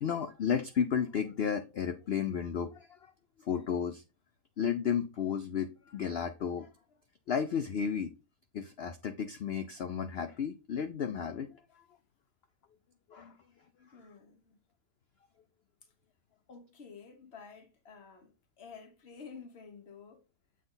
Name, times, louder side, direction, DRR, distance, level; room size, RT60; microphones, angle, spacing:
voice 1, 0.0-3.1 3.4-4.0 4.6-6.7 7.3-8.1 8.5-11.8 13.1-13.4 13.8-13.9, left 7 dB, 85° left, 0.5 m, -33 dB
voice 2, 13.9-14.6 16.5-20.2, left 5 dB, 40° left, 1.5 m, -51 dB
7.3 x 3.9 x 4.0 m
omnidirectional pair, 1.7 m